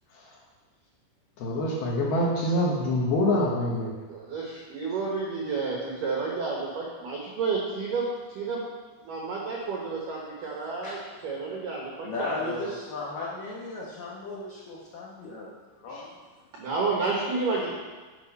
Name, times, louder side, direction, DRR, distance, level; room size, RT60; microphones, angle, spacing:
voice 1, 1.4-3.9, left 1 dB, 65° left, -3 dB, 2.7 m, -25 dB
voice 2, 4.1-8.7 9.0-12.7 15.9-16.0 16.5-17.7, right 4 dB, 75° right, -3 dB, 1.9 m, -31 dB
voice 3, 12.0-16.2, left 3 dB, 90° left, -4 dB, 1.9 m, -36 dB
12.0 x 6.9 x 5.4 m, 1.4 s
omnidirectional pair, 6.0 m